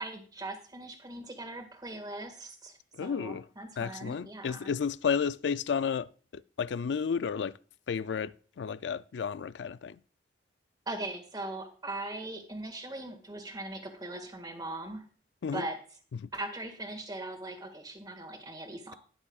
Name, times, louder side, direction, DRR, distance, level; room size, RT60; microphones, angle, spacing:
voice 1, 0.0-2.7 3.0-4.7 10.9-15.0 15.5-15.8 16.3-18.9, right 2 dB, 25° right, 1.8 m, -40 dB
voice 2, 3.0-3.4 3.8-6.1 6.3-7.6 7.9-10.0 15.4-15.6 16.2-16.3, left 6 dB, 75° left, 0.4 m, -32 dB
21.0 x 7.1 x 2.4 m
head